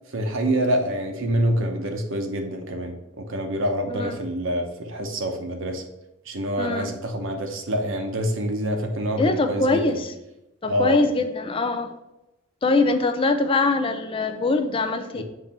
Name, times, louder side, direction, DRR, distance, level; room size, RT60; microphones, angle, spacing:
voice 1, 0.1-5.8 6.3-10.0 10.6-11.0 15.1-15.2, right 1 dB, 60° right, 4 dB, 0.8 m, -26 dB
voice 2, 3.9-4.2 6.6-6.9 9.2-10.1 10.6-11.9 12.6-15.2, left 3 dB, 25° left, 8 dB, 0.3 m, -23 dB
7.2 x 3.2 x 4.3 m, 0.93 s
head